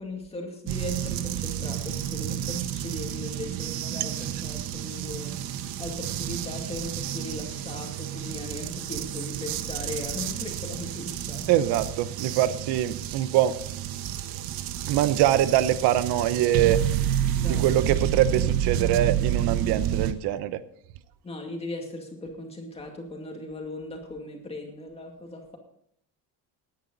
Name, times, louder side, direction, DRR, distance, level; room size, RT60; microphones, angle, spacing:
voice 1, 0.0-5.4 5.8-11.7 17.3-18.0 21.2-25.6, left 2 dB, 15° left, 2 dB, 2.3 m, -38 dB
sound 1, 0.7-20.1, right 10 dB, 70° right, 1.2 m, -30 dB
voice 2, 11.5-13.5 14.9-16.8 17.4-20.6, right 12 dB, 85° right, 13 dB, 1.0 m, -23 dB
18.5 x 10.0 x 4.1 m, 0.69 s
cardioid pair, 180°, 38 cm